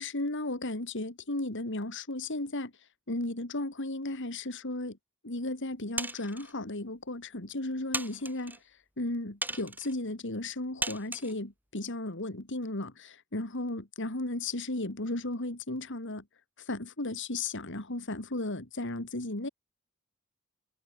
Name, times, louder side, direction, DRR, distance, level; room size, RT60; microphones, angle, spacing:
voice 1, 0.0-5.0 5.2-16.2 16.6-19.5, left 2 dB, 60° left, 3.1 m, -35 dB
sound 1, 6.0-6.5 7.2-7.3 7.9-8.6 9.4-9.9 10.8-11.3, right 2 dB, 10° right, 6.3 m, -36 dB
head